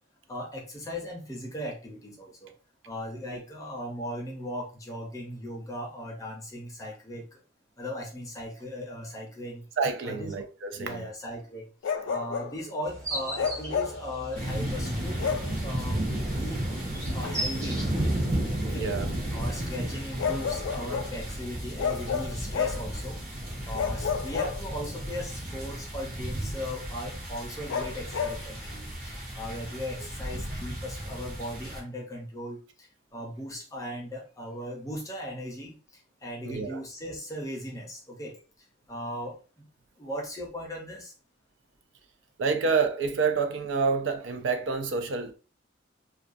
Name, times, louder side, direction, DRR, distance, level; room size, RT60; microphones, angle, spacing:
voice 1, 0.3-2.5 2.9-7.4 7.8-9.7 10.0-10.5 10.8-11.7 12.1-15.2 15.6-16.8 17.1-17.8 18.6-18.9 19.3-35.8 36.2-38.4 38.9-39.7 40.0-41.1, equal, 15° left, 0.5 m, -38 dB
voice 2, 9.8-11.1 18.7-19.1 30.3-30.5 36.4-36.8 42.4-45.3, right 5 dB, 75° right, 0.4 m, -28 dB
Bark, 11.8-12.6 13.4-14.1 15.2-15.6 17.2-17.4 20.2-21.2 21.8-22.9 23.7-25.0 27.7-28.4, left 6 dB, 75° left, 0.3 m, -30 dB
sound 1, 12.8-18.4, right 1 dB, 15° right, 0.8 m, -39 dB
sound 2, 14.3-31.8, right 1 dB, 45° right, 0.8 m, -33 dB
2.3 x 2.2 x 2.5 m
head